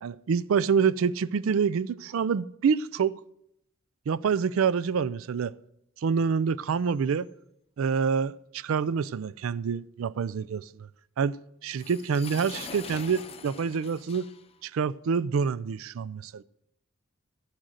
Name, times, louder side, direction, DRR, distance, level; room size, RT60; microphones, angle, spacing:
voice 1, 0.0-3.2 4.1-5.5 6.0-7.3 7.8-10.9 11.2-14.3 14.6-16.4, right 6 dB, 90° right, 0.4 m, -27 dB
sound 1, 11.7-14.6, left 5 dB, 30° left, 0.6 m, -43 dB
13.5 x 6.4 x 7.6 m
head